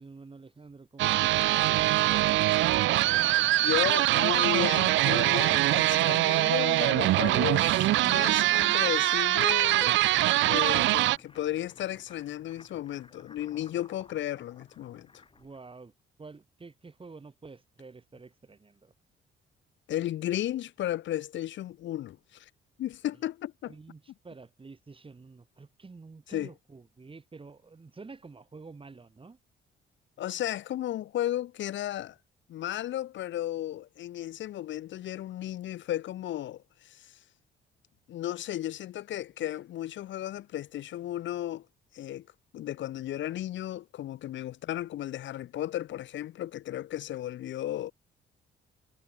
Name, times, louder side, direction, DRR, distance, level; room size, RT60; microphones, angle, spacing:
voice 1, 0.0-2.7 15.3-15.9 16.2-18.9 23.7-29.4 44.4-44.5, right 4 dB, 25° right, 4.2 m, -49 dB
sound 1, 1.0-11.2, right 16 dB, 75° right, 0.4 m, -23 dB
sound 2, 1.8-15.6, left 4 dB, 25° left, 3.8 m, -54 dB
voice 2, 3.6-10.1 10.4-15.2 19.9-22.5 22.8-23.7 26.3-26.5 30.2-32.2 32.5-37.2 38.1-41.7 41.9-42.3 42.5-47.9, left 13 dB, 70° left, 0.9 m, -34 dB
cardioid pair, 90°, 20 cm